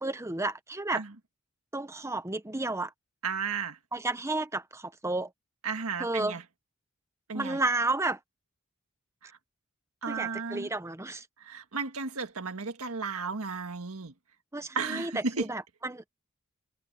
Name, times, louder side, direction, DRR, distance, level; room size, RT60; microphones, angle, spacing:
voice 1, 0.0-1.0 1.7-2.9 3.9-5.3 6.0-6.4 7.3-8.2 10.1-11.3 14.5-16.1, right 2 dB, 15° right, 1.0 m, -32 dB
voice 2, 3.2-3.8 5.6-6.4 7.3-7.6 9.2-9.3 10.0-10.7 11.4-14.1 14.7-15.5, right 4 dB, 85° right, 1.6 m, -34 dB
head